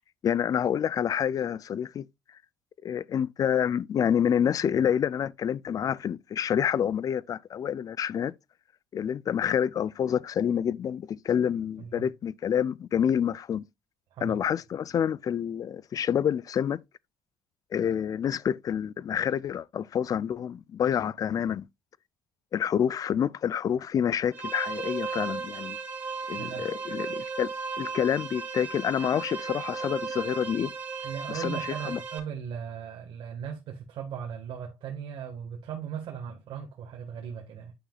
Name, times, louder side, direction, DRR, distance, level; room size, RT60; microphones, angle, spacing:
voice 1, 0.2-2.1 2.8-8.3 8.9-13.6 14.2-16.8 17.7-21.6 22.5-25.8 26.3-27.5 27.8-30.7 31.3-31.6 31.9-32.0, left 8 dB, 40° left, 0.4 m, -28 dB
sound 1, 24.3-32.2, right 5 dB, 20° right, 3.5 m, -35 dB
voice 2, 26.4-26.7 31.0-37.7, right 8 dB, 65° right, 1.5 m, -38 dB
10.0 x 5.7 x 2.3 m
cardioid pair, 110°, 9 cm